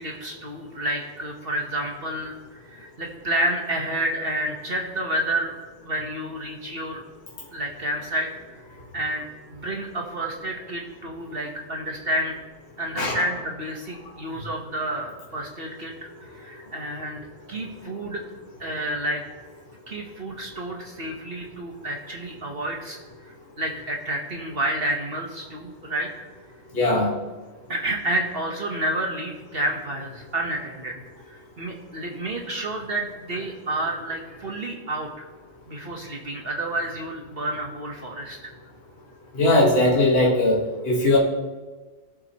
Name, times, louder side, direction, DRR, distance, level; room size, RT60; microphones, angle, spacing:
voice 1, 0.0-5.6 5.8-7.0 7.5-8.3 8.9-12.3 12.8-18.2 18.6-19.2 19.9-23.0 23.2-26.1 26.8-27.0 27.7-35.3 35.7-38.5, right 1 dB, 45° right, 0 dB, 1.5 m, -30 dB
voice 2, 26.7-27.1 39.3-40.6 40.8-41.2, left 1 dB, 45° left, -3 dB, 1.9 m, -19 dB
19.0 x 7.5 x 3.1 m, 1.3 s
omnidirectional pair, 1.4 m